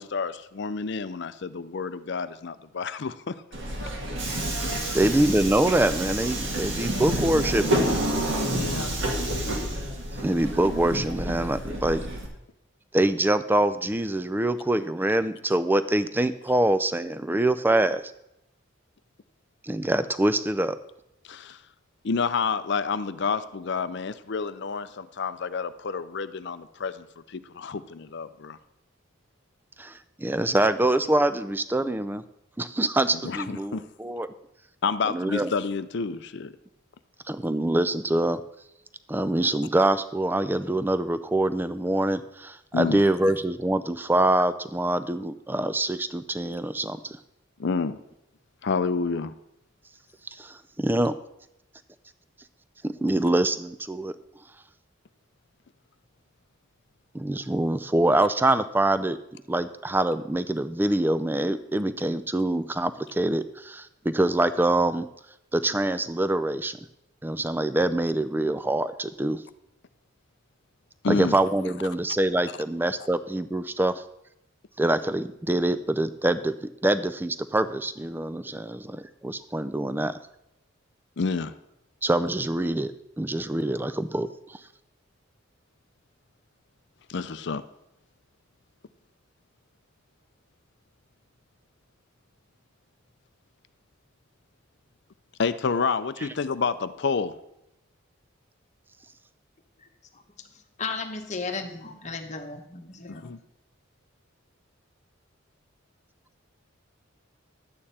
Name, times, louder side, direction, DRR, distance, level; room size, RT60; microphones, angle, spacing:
voice 1, 0.0-3.3 4.7-5.0 8.5-8.9 21.3-21.6 22.0-28.6 33.2-33.9 34.8-36.5 42.7-43.0 47.6-48.0 48.6-49.3 71.0-71.4 81.2-81.5 87.1-87.6 95.4-97.4 103.1-103.4, left 5 dB, 60° left, 13 dB, 0.5 m, -29 dB
Subway metro underground, 3.5-12.3, right 1 dB, 60° right, 1.9 m, -29 dB
voice 2, 4.9-7.9 10.2-12.0 12.9-18.0 19.6-20.8 29.8-32.2 32.6-34.3 35.1-35.5 37.3-38.4 39.1-47.2 50.3-51.1 52.8-54.2 57.1-59.2 59.5-65.1 65.5-66.8 67.2-69.4 71.1-74.0 74.8-80.2 82.0-84.6, right 1 dB, 10° right, 13 dB, 0.4 m, -25 dB
voice 3, 100.8-103.3, left 4 dB, 35° left, 5 dB, 1.1 m, -34 dB
11.5 x 8.7 x 4.2 m, 0.84 s
head